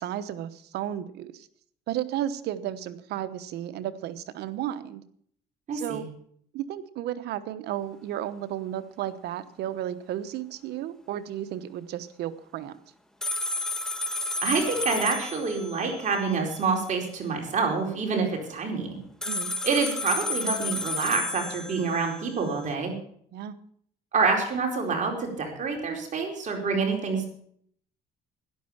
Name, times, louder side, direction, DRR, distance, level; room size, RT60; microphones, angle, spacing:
voice 1, 0.0-1.5 1.9-5.0 5.7-6.1 6.5-12.8 19.2-19.5 23.3-23.5, right 11 dB, 75° right, 12 dB, 1.1 m, -33 dB
voice 2, 5.7-6.0 14.4-19.0 19.6-22.9 24.1-27.2, right 4 dB, 45° right, 2 dB, 4.5 m, -27 dB
sound 1, 13.2-16.6 19.2-22.6, left 2 dB, 5° left, 1.5 m, -32 dB
12.0 x 10.5 x 7.2 m, 0.63 s
cardioid pair, 110°, 17 cm